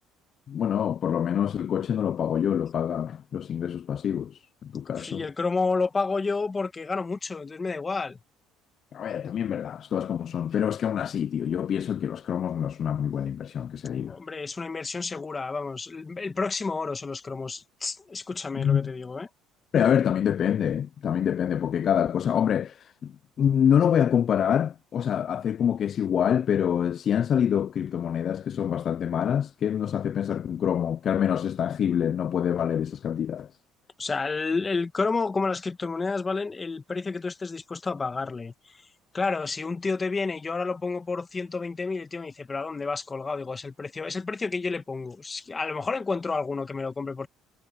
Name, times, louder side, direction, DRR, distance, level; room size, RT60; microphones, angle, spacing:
voice 1, 0.5-5.3 8.9-14.2 18.5-18.9 19.7-33.5, left 9 dB, 40° left, 0.3 m, -26 dB
voice 2, 4.9-8.2 14.1-19.3 34.0-38.9 39.1-47.3, left 4 dB, 20° left, 1.5 m, -30 dB
cardioid pair, 135°, 0 cm